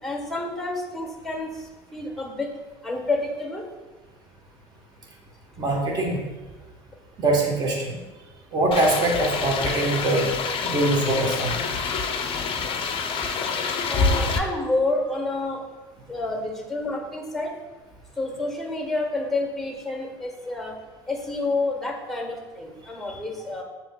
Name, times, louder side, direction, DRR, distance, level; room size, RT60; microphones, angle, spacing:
voice 1, 0.0-2.5 2.8-3.7 13.9-15.7 16.1-17.6 18.1-20.8 21.1-23.6, left 2 dB, ahead, 1 dB, 1.1 m, -29 dB
voice 2, 5.6-6.2 7.2-7.9 8.5-10.3 10.6-11.7 23.1-23.2, right 2 dB, 30° right, -2 dB, 1.0 m, -23 dB
sound 1, 8.7-14.4, left 4 dB, 40° left, 0.5 m, -27 dB
6.7 x 2.8 x 2.2 m, 1.2 s
hypercardioid pair, 80°, 13 cm